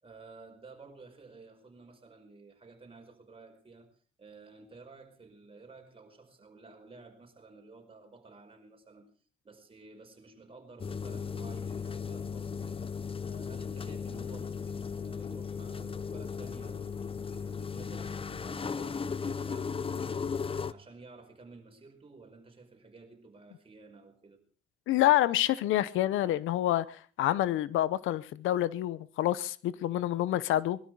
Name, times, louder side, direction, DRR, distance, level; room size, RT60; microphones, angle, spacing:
voice 1, 0.0-9.1 9.4-17.0 17.3-20.3 20.6-24.4, right 3 dB, 30° right, 5.1 m, -53 dB
sound 1, 10.8-20.7, left 6 dB, 30° left, 0.7 m, -36 dB
voice 2, 24.9-30.8, left 14 dB, 85° left, 0.9 m, -27 dB
21.5 x 13.0 x 4.8 m
cardioid pair, 90°, 20 cm